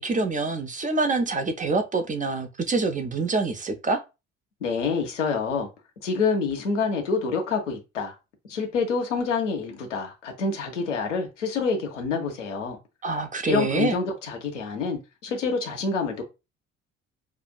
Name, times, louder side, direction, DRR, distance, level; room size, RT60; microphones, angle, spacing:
voice 1, 0.0-4.0 13.0-14.0, right 3 dB, 20° right, 0.6 m, -26 dB
voice 2, 4.6-5.7 6.0-8.1 8.5-12.8 13.5-16.2, left 4 dB, 80° left, 0.8 m, -27 dB
4.8 x 2.4 x 2.3 m
figure-of-eight pair, 45°, 36 cm